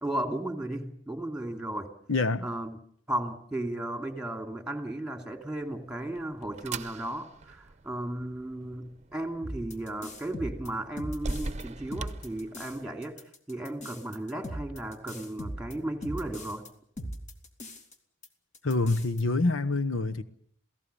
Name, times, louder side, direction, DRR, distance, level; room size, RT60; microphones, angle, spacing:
voice 1, 0.0-1.9 2.4-2.8 3.1-16.6, right 1 dB, 5° right, 2.7 m, -35 dB
voice 2, 2.1-2.4 18.6-20.2, left 3 dB, 90° left, 1.1 m, -26 dB
sound 1, 5.6-13.0, right 3 dB, 35° right, 0.8 m, -42 dB
sound 2, 9.4-11.6 11.9-12.8 13.0-16.7 17.0-17.9 18.2-18.3 18.5-19.2, equal, 35° left, 2.5 m, -40 dB
28.0 x 17.5 x 7.0 m
head